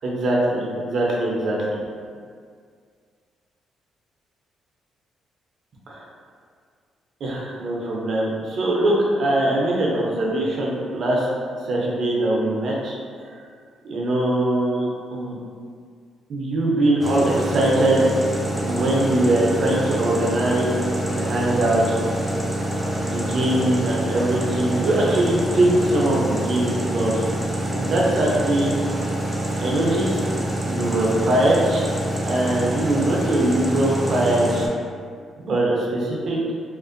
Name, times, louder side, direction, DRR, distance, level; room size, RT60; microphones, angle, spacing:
voice 1, 0.0-1.8 7.2-11.3 11.6-13.3 13.8-15.3 16.3-18.1 18.6-20.8 21.1-22.0 23.0-27.2 27.7-28.7 29.6-30.2 30.6-31.9 32.2-34.7 35.4-36.4, right 1 dB, 60° right, -3 dB, 0.5 m, -22 dB
sound 1, 17.0-34.7, right 1 dB, 5° right, 0.4 m, -26 dB
2.5 x 2.1 x 2.5 m, 2.1 s
cardioid pair, 90°, 0 cm